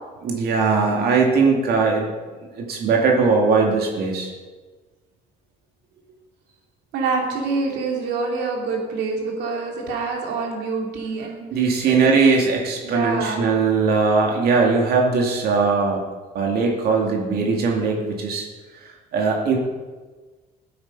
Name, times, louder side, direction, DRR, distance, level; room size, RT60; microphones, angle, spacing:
voice 1, 0.2-2.1 2.6-4.3 11.5-16.0 16.3-18.4 18.8-19.6, right 4 dB, 65° right, 0 dB, 2.4 m, -20 dB
voice 2, 6.9-11.5 11.9-12.0 12.8-13.4, right 4 dB, 90° right, 0 dB, 2.9 m, -26 dB
13.5 x 8.5 x 5.5 m, 1.3 s
cardioid pair, 110°, 17 cm